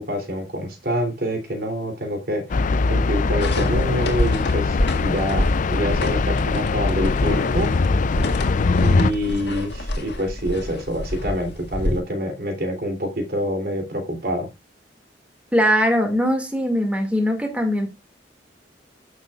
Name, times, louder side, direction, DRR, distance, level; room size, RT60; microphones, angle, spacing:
voice 1, 0.0-7.7 8.8-14.5, equal, 60° right, 5 dB, 3.0 m, -26 dB
sound 1, 2.5-9.1, left 3 dB, 45° left, 0.4 m, -21 dB
sound 2, 3.4-12.0, left 1 dB, 65° left, 1.9 m, -28 dB
voice 2, 15.5-17.9, equal, 5° right, 3 dB, 2.1 m, -20 dB
15.0 x 6.3 x 2.4 m, 0.24 s
head